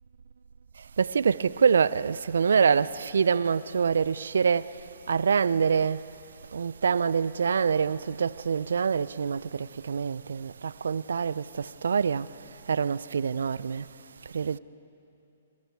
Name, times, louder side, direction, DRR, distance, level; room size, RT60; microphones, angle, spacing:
voice 1, 1.0-4.8 5.1-6.0 6.5-13.9 14.2-14.6, right 6 dB, 70° right, 0.6 m, -25 dB
28.5 x 27.5 x 4.8 m
figure-of-eight pair, 125°, 0 cm